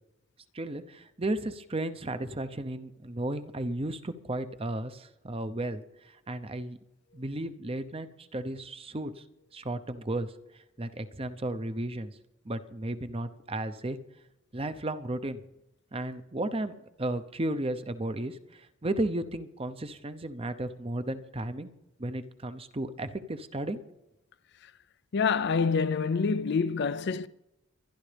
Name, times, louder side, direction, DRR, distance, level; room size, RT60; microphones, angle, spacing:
voice 1, 0.5-6.8 7.1-9.2 9.5-10.3 10.8-12.1 12.4-14.0 14.5-15.4 15.9-16.7 17.0-21.7 22.0-23.8, right 1 dB, 25° right, 0.8 m, -34 dB
voice 2, 25.1-27.3, left 5 dB, 55° left, 0.5 m, -26 dB
23.5 x 11.0 x 3.4 m
head